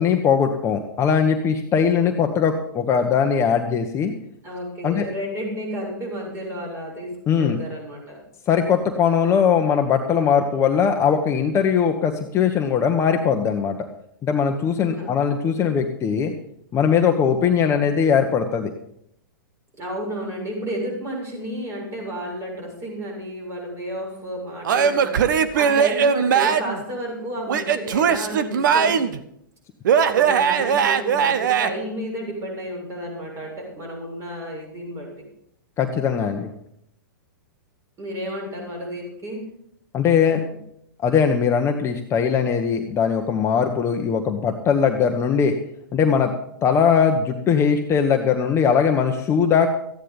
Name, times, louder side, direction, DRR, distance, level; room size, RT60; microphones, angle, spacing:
voice 1, 0.0-4.1 4.8-5.0 7.3-7.6 8.5-13.8 14.2-16.3 16.7-18.7 35.8-36.5 39.9-40.4 41.0-45.5 45.9-46.3 46.6-49.7, left 7 dB, 25° left, 4 dB, 1.2 m, -20 dB
voice 2, 4.4-7.1 7.4-8.2 14.8-15.2 19.8-28.9 30.1-35.1 38.0-39.4 40.2-40.5, equal, 25° right, -1 dB, 7.2 m, -32 dB
Male speech man speaking / Yell / Laughter, 24.6-26.8 27.5-29.2 29.8-31.7, right 7 dB, 65° right, 1.0 m, -19 dB
14.5 x 9.9 x 5.4 m, 0.74 s
hypercardioid pair, 115°, 11 cm